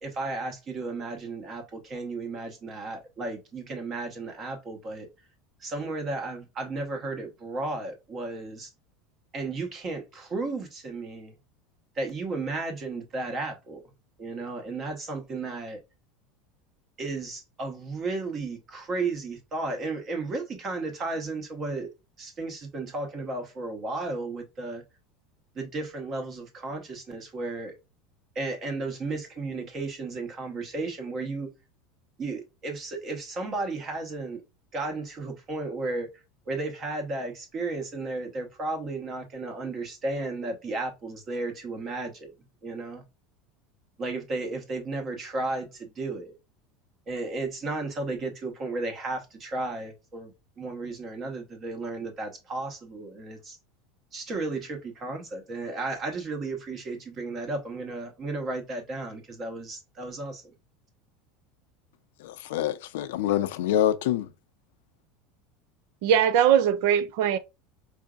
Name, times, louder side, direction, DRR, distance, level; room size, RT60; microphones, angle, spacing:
voice 1, 0.0-5.1 5.6-8.7 9.3-11.4 11.9-13.9 14.2-15.8 17.0-21.9 22.2-24.8 25.5-27.7 28.3-31.5 32.2-34.4 34.7-43.0 44.0-46.4 47.1-53.6 54.1-60.5, right 3 dB, 25° right, 1.1 m, -34 dB
voice 2, 62.2-64.3, left 11 dB, 90° left, 0.5 m, -26 dB
voice 3, 66.0-67.4, right 9 dB, 55° right, 0.5 m, -21 dB
4.8 x 2.7 x 2.3 m
supercardioid pair, 175°, 0 cm